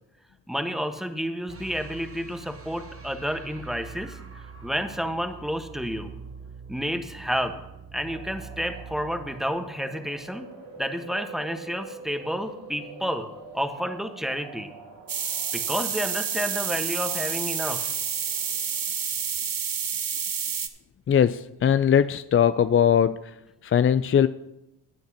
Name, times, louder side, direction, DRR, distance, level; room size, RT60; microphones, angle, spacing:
voice 1, 0.5-6.1 6.7-7.6 7.9-10.5 10.8-13.3 13.5-14.7 15.5-17.9, equal, ahead, 7 dB, 1.3 m, -30 dB
sound 1, 1.5-10.6, right 5 dB, 30° right, 1.3 m, -44 dB
sound 2, 8.1-19.3, right 3 dB, 70° right, 3.7 m, -46 dB
sound 3, 15.1-20.7, right 7 dB, 45° right, 1.1 m, -29 dB
voice 2, 21.1-23.2 23.6-24.3, left 8 dB, 30° left, 13 dB, 0.4 m, -20 dB
16.5 x 9.1 x 2.9 m, 0.93 s
hypercardioid pair, 40°, 46 cm